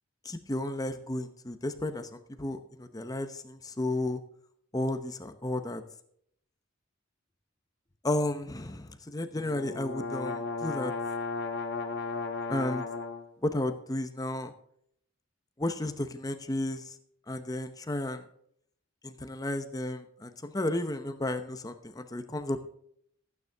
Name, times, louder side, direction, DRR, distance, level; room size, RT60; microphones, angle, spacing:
voice 1, 0.2-4.2 4.7-5.8 8.0-10.9 12.5-12.8 13.4-14.5 15.6-16.9 17.3-18.2 19.0-22.7, left 1 dB, 20° left, 8 dB, 0.9 m, -33 dB
sound 1, 9.3-13.2, left 3 dB, 55° left, 1.4 m, -34 dB
14.5 x 9.3 x 3.5 m, 0.68 s
head